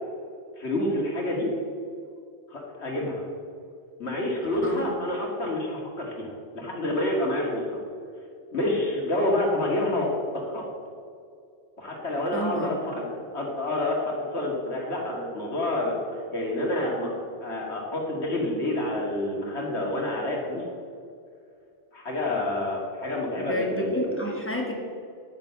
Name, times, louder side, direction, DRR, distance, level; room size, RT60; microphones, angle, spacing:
voice 1, 0.6-1.6 2.5-3.2 4.0-7.7 8.5-10.1 10.4-10.6 11.8-16.0 16.3-17.1 17.4-20.6 21.9-24.4, left 1 dB, 70° left, -1 dB, 2.4 m, -28 dB
voice 2, 4.5-5.0 12.3-12.8 23.4-24.7, equal, 10° left, -1 dB, 1.8 m, -30 dB
9.1 x 8.9 x 6.9 m, 2.4 s
omnidirectional pair, 1.2 m